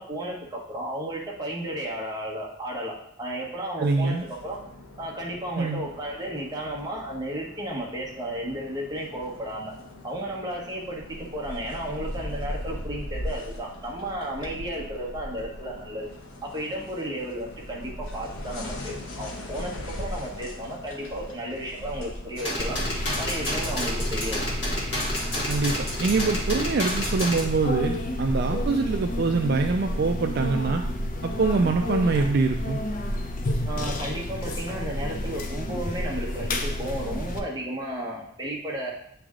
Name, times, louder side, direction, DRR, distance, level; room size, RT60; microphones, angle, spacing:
voice 1, 0.0-4.6 5.0-9.7 10.0-16.1 16.4-19.7 20.0-22.8 23.2-24.4 33.6-38.9, right 1 dB, 20° right, -3 dB, 1.1 m, -33 dB
sound 1, 3.8-23.4, left 1 dB, 90° left, 1.0 m, -39 dB
voice 2, 3.8-4.2 5.6-5.9 25.5-30.8 31.2-32.8, right 4 dB, 50° right, 4 dB, 0.3 m, -24 dB
sound 2, 22.4-27.4, left 1 dB, 60° left, 1.6 m, -30 dB
sound 3, 22.6-37.4, left 1 dB, 40° left, 0.6 m, -30 dB
8.6 x 3.4 x 3.7 m, 0.76 s
head